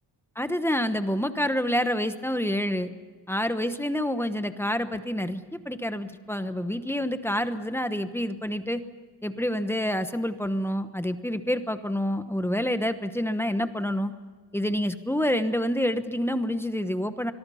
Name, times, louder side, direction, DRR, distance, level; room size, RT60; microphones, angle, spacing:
voice 1, 0.4-2.9 3.3-8.8 9.2-14.1 14.5-17.3, equal, 5° left, 9 dB, 1.0 m, -27 dB
25.0 x 22.0 x 5.7 m, 1.4 s
wide cardioid pair, 175°, 43 cm